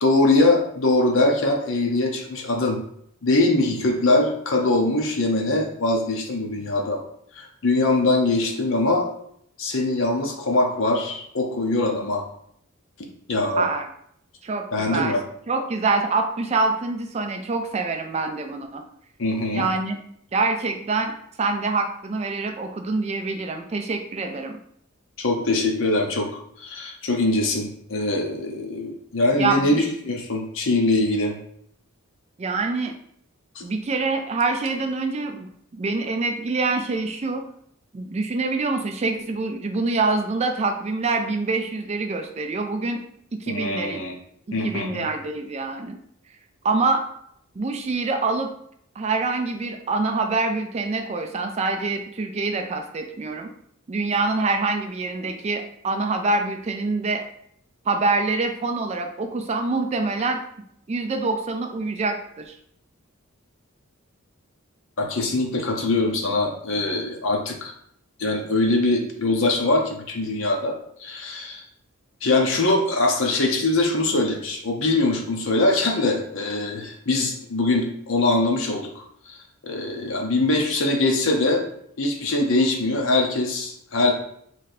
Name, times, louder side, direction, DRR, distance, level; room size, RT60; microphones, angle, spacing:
voice 1, 0.0-2.8 3.2-7.0 7.3-9.1 9.6-12.2 13.3-13.7 14.7-15.2 19.2-19.7 25.2-26.3 26.6-31.4 33.6-33.7 43.5-44.1 44.5-45.0 65.0-67.7 68.2-71.6 72.2-79.4 79.6-81.6 82.0-84.1, left 2 dB, 60° left, 2 dB, 0.7 m, -22 dB
voice 2, 13.6-13.9 14.4-15.2 15.5-18.8 19.5-20.0 20.3-21.1 21.4-24.6 29.4-29.8 32.4-32.9 33.6-37.5 37.9-43.0 43.4-44.0 44.6-46.0 46.6-47.0 47.6-48.5 49.0-53.5 53.9-57.2 57.9-60.4 60.9-62.6, right 3 dB, 30° right, 5 dB, 0.3 m, -25 dB
3.2 x 2.7 x 4.0 m, 0.69 s
head